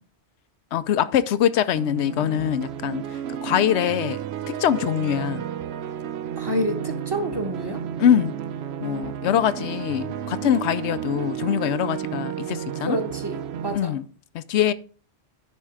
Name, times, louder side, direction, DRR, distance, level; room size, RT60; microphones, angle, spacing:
voice 1, 0.7-3.0 3.4-4.2 4.5-5.4 8.0-8.3 8.8-13.0 13.7-14.0 14.3-14.7, left 10 dB, 85° left, 0.9 m, -23 dB
sound 1, 1.7-13.7, right 10 dB, 75° right, 0.8 m, -32 dB
voice 2, 6.4-7.8 12.8-14.0, equal, 20° right, 1.2 m, -28 dB
10.5 x 4.5 x 4.7 m
omnidirectional pair, 1.1 m